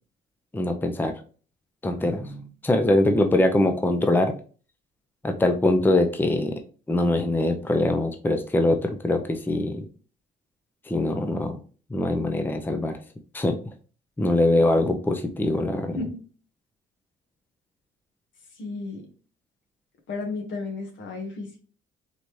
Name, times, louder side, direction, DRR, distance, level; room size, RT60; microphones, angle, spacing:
voice 1, 0.5-1.1 1.8-4.3 5.2-6.6 6.9-9.9 10.9-11.6 11.9-13.0 13.3-13.6 14.2-16.0, left 1 dB, 10° left, 6 dB, 0.6 m, -23 dB
voice 2, 18.5-19.0 20.1-21.6, left 3 dB, 70° left, 3 dB, 1.4 m, -33 dB
4.0 x 3.4 x 3.1 m, 0.39 s
cardioid pair, 90°, 20 cm